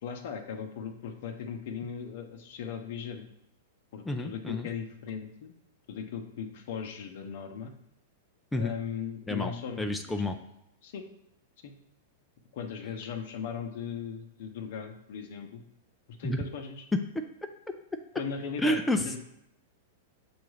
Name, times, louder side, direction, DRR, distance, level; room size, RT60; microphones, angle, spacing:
voice 1, 0.0-3.2 3.9-5.5 5.9-7.7 8.6-9.9 10.8-11.0 11.6-11.7 12.5-15.6 16.2-16.8 18.2-19.2, left 7 dB, 65° left, 6 dB, 0.6 m, -38 dB
voice 2, 4.1-4.7 8.5-8.7 9.3-9.5 9.8-10.4 16.2-16.4 16.9-17.2 18.6-19.2, left 1 dB, 5° left, 5 dB, 0.3 m, -29 dB
6.8 x 2.4 x 3.1 m, 0.81 s
hypercardioid pair, 115°, 0 cm